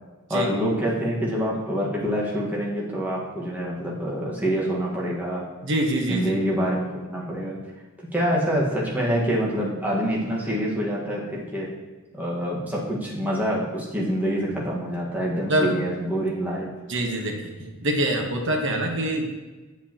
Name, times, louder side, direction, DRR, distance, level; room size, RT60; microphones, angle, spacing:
voice 1, 0.3-5.5 6.1-7.6 8.1-11.7 12.1-16.7, equal, 10° right, -5 dB, 1.5 m, -26 dB
voice 2, 5.6-6.3 15.5-15.8 16.9-19.3, right 1 dB, 60° right, 2 dB, 1.1 m, -25 dB
8.2 x 7.6 x 2.9 m, 1.2 s
head